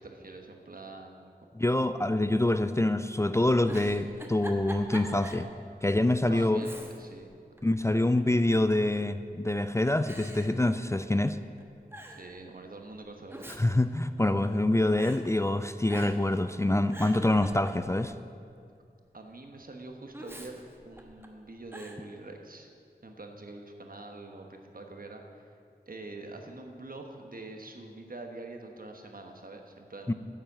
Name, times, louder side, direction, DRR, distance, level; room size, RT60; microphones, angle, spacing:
voice 1, 0.0-1.3 6.3-7.3 12.1-13.6 19.1-22.7 23.0-25.5 25.9-30.1, right 2 dB, 60° right, 3 dB, 1.2 m, -45 dB
voice 2, 1.5-5.5 5.8-6.6 7.6-11.4 13.6-18.1 30.1-30.2, left 1 dB, 15° left, 11 dB, 0.4 m, -26 dB
Giggle, 3.6-5.5 5.9-6.0 6.6-7.2 7.6-8.4 9.1-9.5 10.1-11.3 11.6-11.7 11.9-12.3 13.1-14.6 15.0-15.2 15.9-16.3 16.7-18.1 20.1-21.3 21.7-22.0, right 1 dB, 15° right, 1.2 m, -45 dB
10.0 x 7.3 x 7.3 m, 2.3 s
wide cardioid pair, 45°, 16 cm